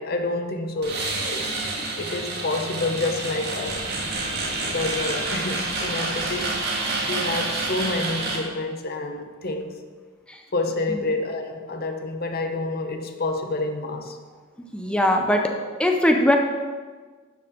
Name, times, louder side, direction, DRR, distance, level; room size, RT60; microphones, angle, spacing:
voice 1, 0.0-1.5 2.0-3.9 4.6-6.6 7.0-9.8 10.5-14.2, left 2 dB, 50° left, 5 dB, 0.9 m, -28 dB
sound 1, 0.8-8.4, right 2 dB, 55° right, 1.8 m, -28 dB
voice 2, 14.7-16.4, left 1 dB, 5° left, 3 dB, 0.6 m, -21 dB
11.5 x 7.3 x 3.7 m, 1.4 s
head